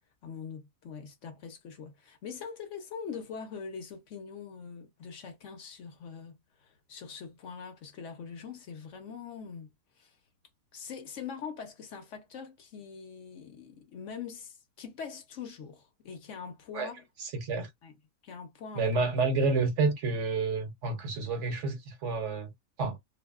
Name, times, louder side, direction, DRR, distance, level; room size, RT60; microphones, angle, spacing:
voice 1, 0.2-9.7 10.0-10.2 10.7-17.0 17.8-18.0 18.2-18.9, left 6 dB, 65° left, 1.0 m, -43 dB
voice 2, 17.2-17.7 18.8-22.5 22.8-23.0, right 3 dB, 65° right, 1.0 m, -29 dB
2.7 x 2.6 x 2.3 m
omnidirectional pair, 1.5 m